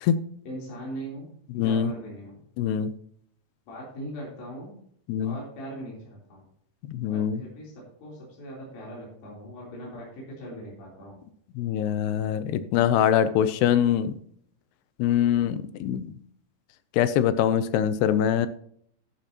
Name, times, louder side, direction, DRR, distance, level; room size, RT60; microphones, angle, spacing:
voice 1, 0.4-2.4 3.7-4.8 5.2-6.5 7.1-11.2, right 1 dB, 60° left, -4 dB, 5.2 m, -40 dB
voice 2, 1.6-1.9 2.6-2.9 5.1-5.3 6.9-7.4 11.6-14.1 15.0-16.1 17.0-18.5, left 9 dB, 85° left, 13 dB, 2.8 m, -23 dB
12.0 x 10.5 x 2.9 m, 0.65 s
omnidirectional pair, 4.7 m